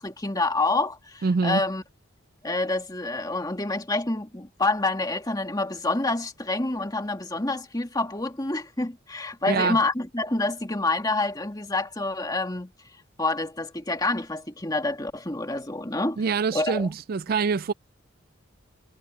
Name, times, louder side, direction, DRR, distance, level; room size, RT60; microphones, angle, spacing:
voice 1, 0.0-1.8 2.4-12.7 13.2-16.2 16.5-16.9, left 2 dB, 20° left, 2.1 m, -27 dB
voice 2, 1.2-1.6 9.5-9.8 16.2-17.7, right 5 dB, 45° right, 0.4 m, -25 dB
head